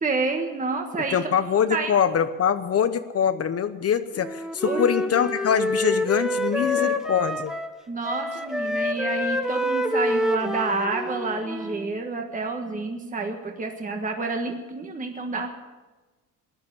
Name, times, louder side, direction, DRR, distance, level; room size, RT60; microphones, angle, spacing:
voice 1, 0.0-1.3 1.7-2.0 4.6-5.0 6.6-6.9 7.9-15.5, right 3 dB, 20° right, 3 dB, 1.5 m, -29 dB
voice 2, 1.1-7.5, left 8 dB, 45° left, 11 dB, 0.8 m, -23 dB
Wind instrument woodwind instrument, 4.2-7.8 8.0-12.0, left 1 dB, ahead, 1.0 m, -27 dB
15.5 x 10.5 x 8.4 m, 1.2 s
cardioid pair, 120°, 35 cm